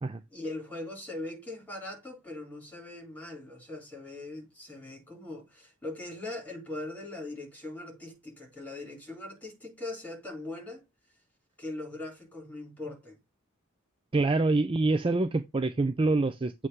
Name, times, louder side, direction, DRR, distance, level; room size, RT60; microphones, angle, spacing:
voice 1, 0.3-10.8 11.6-13.2, left 2 dB, 5° left, 3.7 m, -40 dB
voice 2, 14.1-16.7, right 3 dB, 25° right, 0.4 m, -26 dB
8.0 x 3.2 x 5.6 m
head